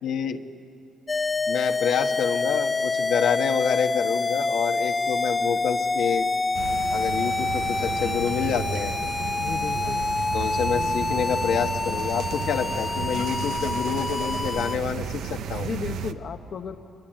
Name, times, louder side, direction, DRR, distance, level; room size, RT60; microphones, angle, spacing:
voice 1, 0.0-0.4 1.5-6.3 6.9-8.9 10.3-15.7, left 7 dB, 75° left, 5 dB, 1.4 m, -27 dB
sound 1, 1.1-14.8, left 3 dB, 25° left, 0.6 m, -27 dB
sound 2, 6.5-16.1, right 8 dB, 80° right, 1.0 m, -33 dB
voice 2, 9.4-10.1 15.6-16.8, left 6 dB, 60° left, 4 dB, 1.0 m, -34 dB
27.0 x 23.5 x 9.0 m, 2.5 s
cardioid pair, 90°, 0 cm